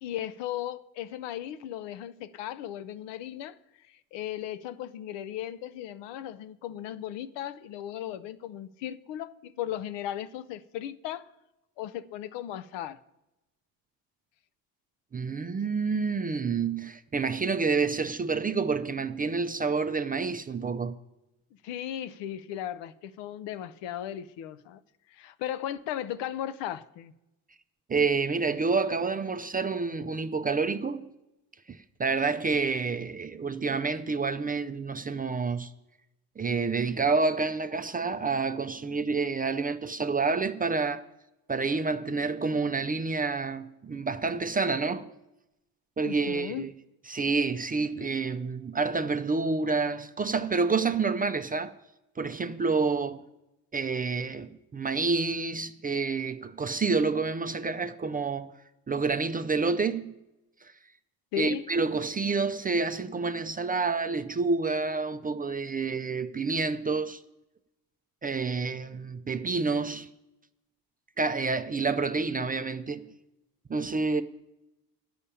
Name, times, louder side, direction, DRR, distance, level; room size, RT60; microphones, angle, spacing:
voice 1, 0.0-3.6 3.9-11.3 11.8-13.0 21.6-24.8 25.1-27.1 46.0-46.7 61.3-61.6, left 11 dB, 60° left, 0.7 m, -36 dB
voice 2, 15.1-21.0 27.9-31.1 31.7-35.7 36.4-41.0 41.5-45.1 46.0-46.7 47.1-51.7 52.2-53.2 53.7-58.5 58.9-60.1 61.4-67.2 68.2-70.1 71.2-73.1 73.7-74.2, right 4 dB, 20° right, 0.5 m, -28 dB
11.5 x 5.4 x 8.7 m
hypercardioid pair, 60°, 49 cm